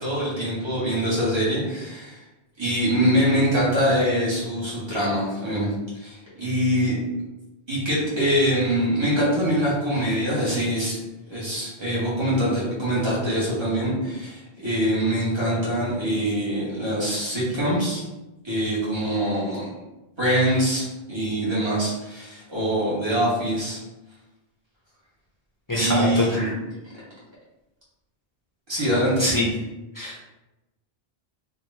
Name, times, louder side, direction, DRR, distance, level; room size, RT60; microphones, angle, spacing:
voice 1, 0.0-2.2 2.6-7.0 7.7-11.0 11.3-18.0 18.4-19.6 20.2-23.8 25.7-26.5 26.9-27.0 28.7-29.4, equal, 25° right, -8 dB, 1.3 m, -24 dB
voice 2, 25.7-26.5 29.2-29.5 30.0-30.2, left 1 dB, 25° left, -5 dB, 0.5 m, -24 dB
2.9 x 2.5 x 3.2 m, 1.0 s
omnidirectional pair, 1.0 m